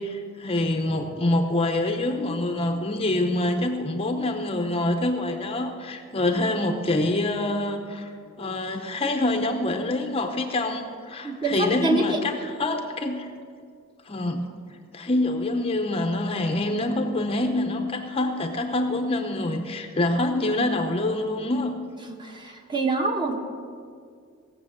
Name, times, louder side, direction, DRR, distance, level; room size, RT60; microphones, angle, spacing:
voice 1, 0.0-8.1 8.4-13.3 14.1-14.4 14.9-21.7, left 2 dB, 30° left, 5 dB, 0.7 m, -26 dB
voice 2, 11.2-12.2 22.2-23.4, right 2 dB, 20° right, 3 dB, 1.2 m, -26 dB
17.5 x 6.9 x 7.2 m, 2.2 s
head